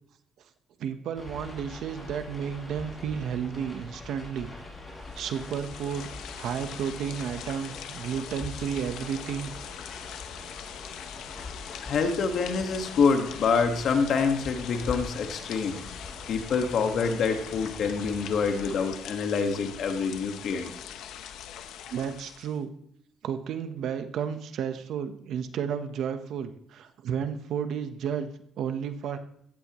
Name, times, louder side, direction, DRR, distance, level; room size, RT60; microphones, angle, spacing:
voice 1, 0.8-4.5 5.2-6.1 6.3-9.5 10.4-10.5 21.9-22.7 23.2-28.3 28.6-29.2, right 8 dB, 70° right, 9 dB, 1.1 m, -32 dB
sound 1, 1.1-18.8, left 2 dB, 25° left, 6.6 m, -43 dB
sound 2, 5.0-22.6, left 9 dB, 80° left, 0.9 m, -42 dB
voice 2, 11.8-15.8 16.3-20.7, left 5 dB, 60° left, 5 dB, 1.7 m, -26 dB
15.5 x 14.5 x 3.1 m, 0.70 s
cardioid pair, 105°, 0 cm